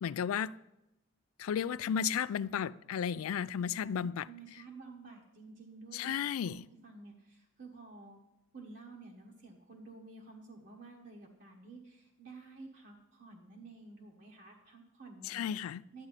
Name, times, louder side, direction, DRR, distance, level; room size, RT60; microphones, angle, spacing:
voice 1, 0.0-0.6 1.4-4.3 5.9-6.7 15.2-15.8, left 8 dB, 85° left, 0.3 m, -34 dB
voice 2, 3.8-6.2 6.4-6.6 6.8-8.2 8.5-15.4 15.9-16.1, right 3 dB, 55° right, 1.2 m, -52 dB
11.5 x 8.8 x 4.1 m
head